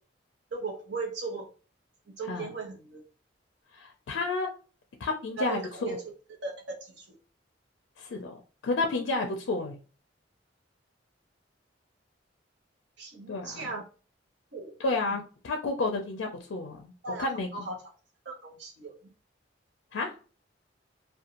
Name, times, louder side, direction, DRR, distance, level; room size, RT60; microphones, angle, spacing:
voice 1, 0.5-1.5 2.2-3.0 5.4-6.0 6.4-6.5 6.8-7.1 13.0-13.8 14.5-15.1 17.0-17.3 17.5-17.8 18.2-18.9, right 4 dB, 65° right, 0 dB, 0.8 m, -37 dB
voice 2, 3.7-4.6 5.0-5.6 8.0-9.8 13.3-13.7 14.8-16.9 17.2-17.7 19.9-20.1, left 3 dB, 80° left, 3 dB, 0.4 m, -31 dB
2.5 x 2.2 x 2.8 m, 0.36 s
head